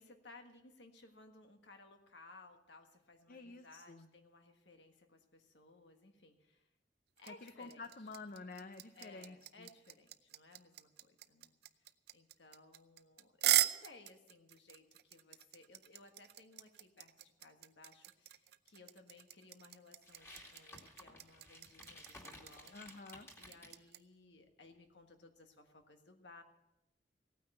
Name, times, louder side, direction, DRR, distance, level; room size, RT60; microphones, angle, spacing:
voice 1, 0.0-6.7 7.2-7.9 8.9-11.6 12.1-22.8 23.4-26.4, left 3 dB, 75° left, 5 dB, 1.5 m, -60 dB
voice 2, 3.3-4.1 7.3-9.7 22.7-23.3, left 3 dB, 50° left, 8 dB, 0.7 m, -50 dB
sound 1, 7.2-24.0, right 13 dB, 60° right, 0.6 m, -38 dB
sound 2, 20.0-23.8, left 1 dB, 15° left, 2.3 m, -55 dB
16.5 x 9.3 x 6.7 m, 0.91 s
head